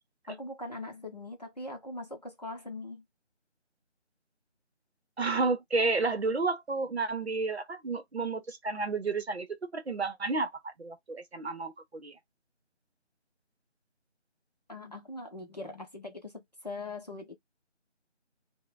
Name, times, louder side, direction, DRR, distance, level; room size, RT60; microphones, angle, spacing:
voice 1, 0.3-3.0 14.7-17.3, left 2 dB, 35° left, 0.7 m, -41 dB
voice 2, 5.2-9.5 9.7-12.2, right 3 dB, 60° right, 0.8 m, -31 dB
2.4 x 2.2 x 3.8 m
figure-of-eight pair, 170°, 35 cm